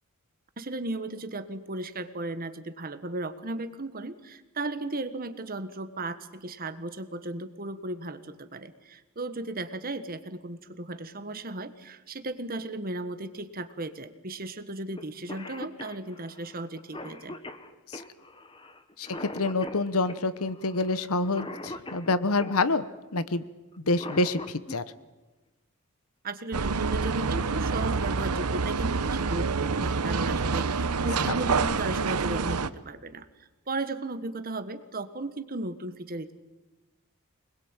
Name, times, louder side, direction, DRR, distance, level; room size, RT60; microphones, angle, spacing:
voice 1, 0.6-17.4 26.2-36.3, right 2 dB, 40° right, 11 dB, 1.4 m, -35 dB
Cough, 15.0-15.1 15.3-22.6 23.7-24.8 26.4-26.5 27.5-27.8 28.3-28.4 28.8-29.2, left 2 dB, 25° left, 1.3 m, -42 dB
voice 2, 19.0-22.8 23.1-23.4 23.8-24.8 31.2-31.4, left 3 dB, 75° left, 14 dB, 1.1 m, -27 dB
sound 1, 26.5-32.7, right 4 dB, 90° right, 0.9 m, -27 dB
24.5 x 21.0 x 9.0 m, 1.1 s
head